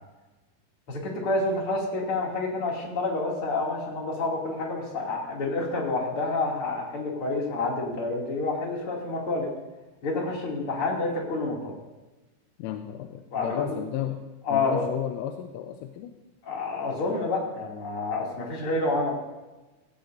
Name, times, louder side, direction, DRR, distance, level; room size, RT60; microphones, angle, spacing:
voice 1, 0.9-9.5 10.0-11.7 13.3-13.7 14.4-14.9 16.4-19.1, left 3 dB, 35° left, -2 dB, 2.7 m, -28 dB
voice 2, 12.6-14.2 14.5-16.2, left 11 dB, 85° left, 5 dB, 3.2 m, -33 dB
17.0 x 16.5 x 2.7 m, 1.1 s
omnidirectional pair, 5.8 m